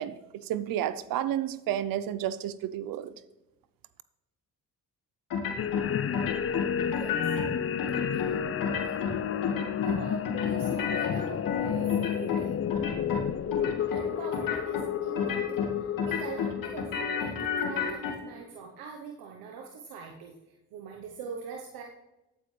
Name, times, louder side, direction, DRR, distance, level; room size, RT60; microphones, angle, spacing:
voice 1, 0.0-3.1, right 11 dB, 70° right, 15 dB, 0.7 m, -31 dB
sound 1, 5.3-5.9 6.1-7.5 7.8-8.3 8.6-9.1 9.4-10.0 10.2-12.4 12.7-13.2 13.5-14.0 14.3-14.8 15.2-15.7 16.0-18.1, left 6 dB, 65° left, 1.9 m, -31 dB
sound 2, 5.6-18.3, left 8 dB, 40° left, 0.6 m, -31 dB
voice 2, 6.9-7.3 8.1-8.9 9.8-12.9 13.9-20.3 20.7-21.8, right 6 dB, 85° right, 2 dB, 1.1 m, -43 dB
13.5 x 9.0 x 3.3 m, 0.98 s
supercardioid pair, 75°, 35 cm